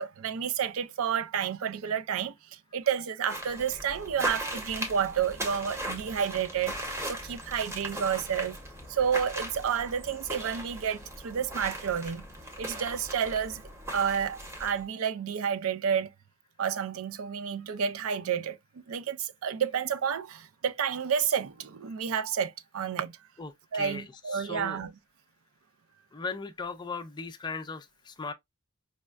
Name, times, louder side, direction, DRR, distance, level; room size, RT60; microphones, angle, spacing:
voice 1, 0.0-8.6 8.9-12.2 12.6-13.6 13.9-16.1 16.6-23.1 23.7-24.9, right 7 dB, 65° right, 0.4 m, -30 dB
sound 1, 3.3-14.8, right 1 dB, 10° right, 0.8 m, -38 dB
voice 2, 23.4-24.0 24.3-24.8 26.1-28.3, left 4 dB, 20° left, 0.3 m, -38 dB
5.1 x 2.2 x 2.3 m
head